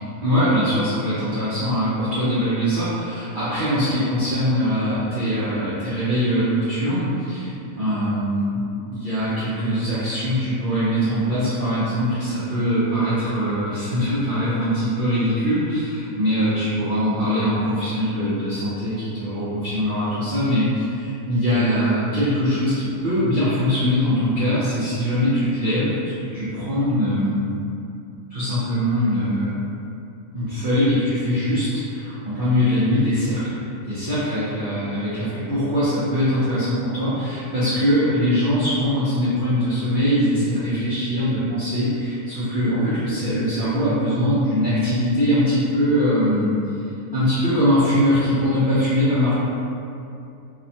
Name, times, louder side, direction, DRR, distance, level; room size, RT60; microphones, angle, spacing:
voice 1, 0.2-7.5 7.8-27.5 28.3-29.6 30.3-33.4 33.8-46.5 47.1-49.3, equal, 65° right, -12 dB, 0.5 m, -22 dB
2.9 x 2.1 x 2.6 m, 2.6 s
omnidirectional pair, 1.6 m